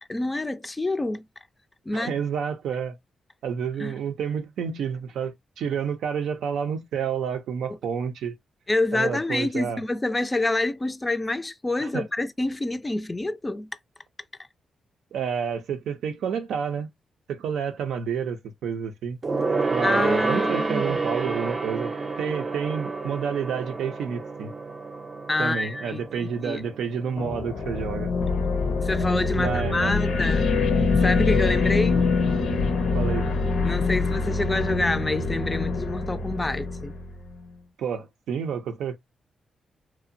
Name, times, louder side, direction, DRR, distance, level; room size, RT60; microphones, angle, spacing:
voice 1, 0.1-1.2 1.9-2.1 3.8-3.9 8.7-13.7 19.8-21.0 25.3-26.6 28.8-30.4 31.0-32.1 33.6-36.9, left 2 dB, 20° left, 0.3 m, -27 dB
voice 2, 1.9-3.0 3.4-8.4 8.9-9.8 11.8-12.1 15.1-16.9 17.3-19.2 19.7-21.9 22.2-24.5 25.4-28.1 29.4-29.9 32.9-33.3 37.8-39.0, right 7 dB, 85° right, 0.5 m, -29 dB
Gong, 19.2-29.0 29.3-29.6 29.9-30.0, right 3 dB, 40° right, 0.6 m, -30 dB
sound 1, 27.2-37.4, left 4 dB, 80° left, 0.6 m, -24 dB
2.7 x 2.1 x 2.6 m
cardioid pair, 80°, 0 cm